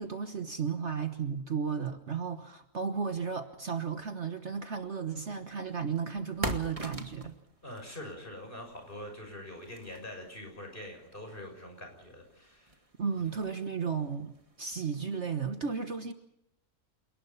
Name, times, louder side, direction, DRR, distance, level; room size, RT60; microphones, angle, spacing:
voice 1, 0.0-7.4 13.0-16.1, right 6 dB, 50° right, 8 dB, 1.5 m, -34 dB
sound 1, 4.8-15.2, right 1 dB, 20° right, 2.0 m, -45 dB
voice 2, 7.6-12.8, left 1 dB, 35° left, 4 dB, 6.8 m, -44 dB
28.5 x 19.0 x 5.7 m, 0.76 s
omnidirectional pair, 1.6 m